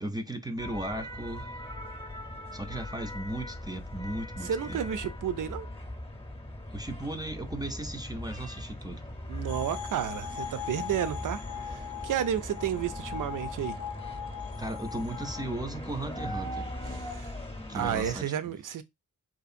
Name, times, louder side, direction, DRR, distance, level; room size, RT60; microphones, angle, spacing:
voice 1, 0.0-1.6 2.5-4.8 6.7-9.0 14.6-16.7 17.7-18.3, right 1 dB, 10° right, 0.4 m, -36 dB
sound 1, 0.6-18.2, left 1 dB, 15° left, 0.7 m, -40 dB
voice 2, 4.4-5.7 9.3-13.8 16.9-17.3 17.7-18.8, right 9 dB, 70° right, 0.5 m, -32 dB
sound 2, 9.5-15.6, left 9 dB, 80° left, 0.5 m, -40 dB
2.7 x 2.5 x 2.4 m
cardioid pair, 50°, 33 cm